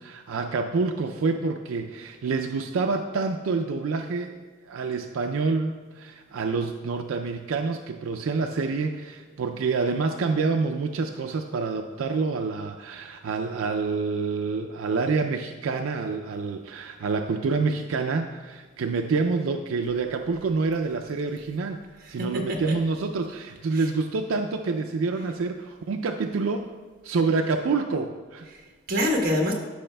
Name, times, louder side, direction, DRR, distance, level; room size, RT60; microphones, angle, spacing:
voice 1, 0.0-4.4 4.7-21.8 22.1-26.6 27.0-28.5, right 4 dB, 85° right, 5 dB, 0.4 m, -27 dB
voice 2, 22.0-22.8 23.7-23.9 28.4-29.5, left 1 dB, 45° right, 0 dB, 1.2 m, -27 dB
12.5 x 5.5 x 2.2 m, 1.4 s
head